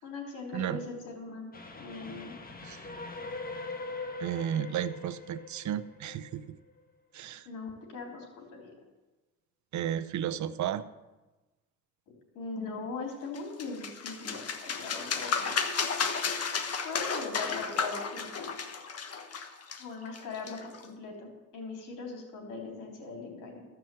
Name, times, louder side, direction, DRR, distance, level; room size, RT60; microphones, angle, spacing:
voice 1, 0.0-2.3 7.5-8.7 12.1-15.5 15.9-16.1 16.8-18.5 19.8-23.7, left 4 dB, 90° left, 1 dB, 3.6 m, -40 dB
Train, 1.5-6.8, left 3 dB, 30° left, 1.5 m, -42 dB
voice 2, 4.2-6.6 7.1-7.5 9.7-10.8, right 10 dB, 70° right, 14 dB, 0.7 m, -33 dB
sound 1, 13.3-20.9, left 5 dB, 55° left, 1.3 m, -33 dB
14.0 x 6.0 x 7.7 m, 1.1 s
cardioid pair, 90°, 30 cm